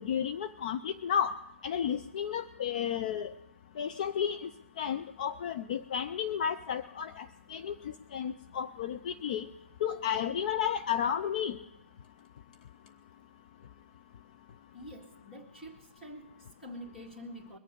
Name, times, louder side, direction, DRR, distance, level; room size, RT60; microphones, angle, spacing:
voice 1, 0.0-1.4 1.6-3.3 3.8-4.5 4.8-9.5 9.8-11.6, left 8 dB, 35° left, 11 dB, 0.4 m, -32 dB
voice 2, 14.7-17.6, equal, 5° left, 0 dB, 2.0 m, -47 dB
22.0 x 7.4 x 5.2 m, 0.89 s
figure-of-eight pair, 140°, 7 cm